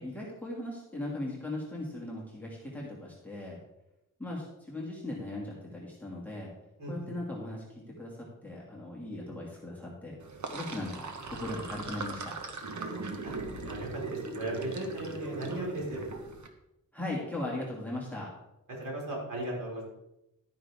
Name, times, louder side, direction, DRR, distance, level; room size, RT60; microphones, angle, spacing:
voice 1, 0.0-3.6 4.2-6.5 6.9-10.2 10.5-12.4 16.9-18.3, left 1 dB, 5° left, -4 dB, 2.4 m, -38 dB
voice 2, 6.8-7.1 13.2-13.3 13.6-16.0 18.8-19.8, right 1 dB, 85° right, -4 dB, 4.7 m, -36 dB
Sink (filling or washing), 10.2-16.5, right 3 dB, 60° right, 1.3 m, -39 dB
12.5 x 9.4 x 3.6 m, 0.89 s
wide cardioid pair, 145°, 33 cm